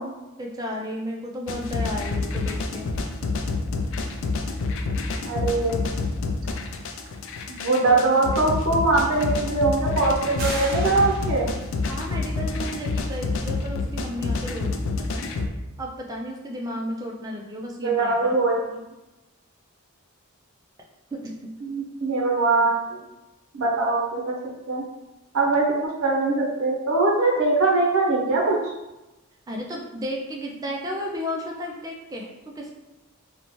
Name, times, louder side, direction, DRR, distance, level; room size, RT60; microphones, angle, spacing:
voice 1, 0.0-2.9 11.9-14.8 15.1-15.3 15.8-18.4 21.1-21.5 29.5-32.3 32.6-32.7, equal, 15° right, -1 dB, 0.3 m, -33 dB
sound 1, 1.5-15.5, left 3 dB, 65° left, 0.3 m, -28 dB
voice 2, 5.3-5.8 7.5-11.5 17.8-18.6 21.6-23.0 23.5-24.3 24.7-24.8 25.3-28.7, right 3 dB, 80° right, -2 dB, 0.5 m, -22 dB
sound 2, 10.4-11.8, right 1 dB, 45° right, 1.1 m, -35 dB
2.7 x 2.1 x 3.0 m, 1.0 s
head